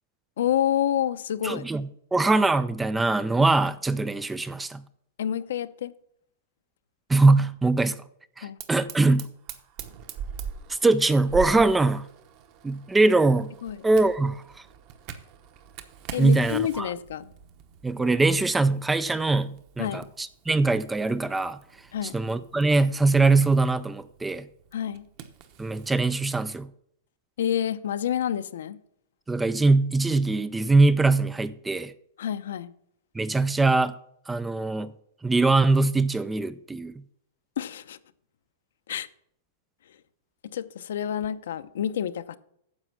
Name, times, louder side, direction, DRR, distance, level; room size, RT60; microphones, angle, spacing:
voice 1, 0.4-1.6 5.2-5.9 8.4-8.6 13.6-13.9 16.1-17.3 19.8-20.1 21.9-22.2 24.7-25.1 27.4-28.8 32.2-32.7 37.6-38.0 38.9-39.1 40.5-42.4, left 10 dB, 75° left, 0.7 m, -28 dB
voice 2, 1.4-4.8 7.1-7.9 8.4-9.2 10.7-12.1 12.6-13.5 13.8-14.4 16.2-16.9 17.8-21.6 22.1-24.4 25.6-26.7 29.3-31.9 33.2-33.9 34.3-34.9 35.2-36.9, right 3 dB, 5° right, 0.3 m, -22 dB
Fire, 8.6-25.9, right 8 dB, 30° right, 0.9 m, -43 dB
9.7 x 7.2 x 5.8 m
supercardioid pair, 170°, 0 cm